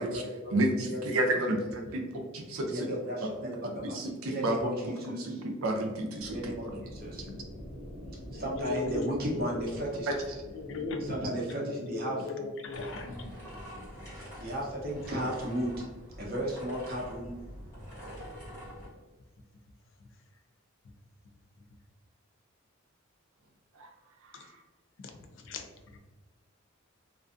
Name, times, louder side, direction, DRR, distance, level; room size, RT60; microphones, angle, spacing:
voice 1, 0.0-0.5 0.8-1.0 1.4-1.8 2.7-4.0 4.2-5.4 6.3-7.3 8.3-10.1 11.1-12.2 14.1-15.7 16.2-17.4, right 1 dB, 45° right, -3 dB, 0.7 m, -35 dB
voice 2, 0.5-2.0 2.3-2.9 3.2-3.3 3.8-6.5 10.1-10.2 23.7-23.9 24.2-24.3, right 1 dB, 90° right, 3 dB, 0.5 m, -31 dB
sound 1, 6.2-11.3, equal, 10° right, 0.7 m, -46 dB
voice 3, 8.3-9.7 10.5-11.1 11.5-13.4 13.7-13.9 20.0-20.1 24.3-24.5 25.0-26.0, left 4 dB, 60° left, 5 dB, 0.4 m, -39 dB
sound 2, 12.7-18.9, equal, 15° left, 1.2 m, -45 dB
2.5 x 2.2 x 2.4 m, 1.2 s
head